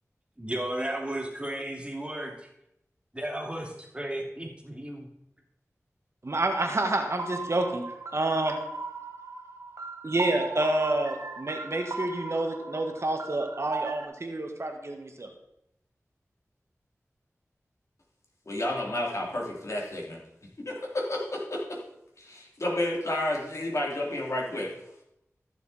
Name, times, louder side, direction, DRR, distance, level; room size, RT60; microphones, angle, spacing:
voice 1, 0.4-2.5 3.1-5.1, right 1 dB, 20° right, 0 dB, 2.7 m, -34 dB
voice 2, 6.2-7.8 8.1-8.6 10.0-15.3, right 2 dB, 55° right, 4 dB, 1.5 m, -28 dB
sound 1, 7.2-14.0, right 3 dB, 75° right, 1.1 m, -38 dB
voice 3, 18.5-20.2 20.6-21.8 22.2-24.7, left 1 dB, 65° left, -2 dB, 2.9 m, -31 dB
14.0 x 7.0 x 4.2 m, 0.81 s
wide cardioid pair, 50°, 6 cm